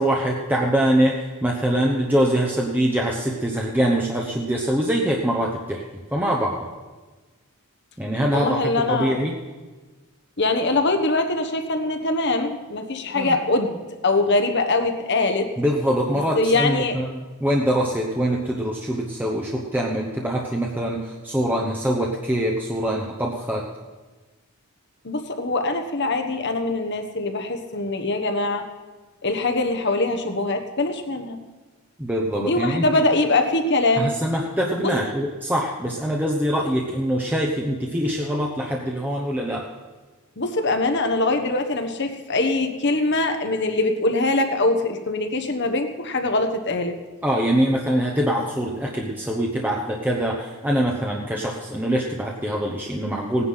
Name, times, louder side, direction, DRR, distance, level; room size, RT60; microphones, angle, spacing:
voice 1, 0.0-5.8 6.1-6.7 8.0-9.4 13.1-13.4 15.6-23.6 32.0-33.0 34.0-39.7 47.2-53.5, equal, 10° right, -2 dB, 0.9 m, -24 dB
voice 2, 8.3-9.2 10.4-15.5 16.4-16.9 25.0-28.7 29.2-31.4 32.4-34.2 34.8-34.9 40.4-46.9, left 2 dB, 50° left, 5 dB, 1.3 m, -23 dB
17.0 x 9.8 x 5.7 m, 1.3 s
head